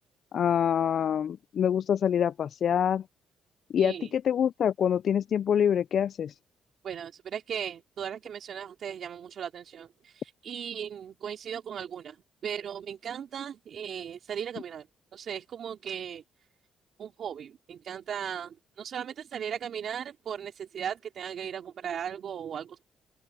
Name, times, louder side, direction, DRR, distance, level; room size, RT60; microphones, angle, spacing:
voice 1, 0.3-3.0 3.7-6.3, left 8 dB, 60° left, 0.3 m, -26 dB
voice 2, 3.8-4.1 6.8-12.2 12.4-14.9 15.1-16.2 17.0-22.8, right 8 dB, 60° right, 3.3 m, -37 dB
open air
cardioid pair, 90°, 0 cm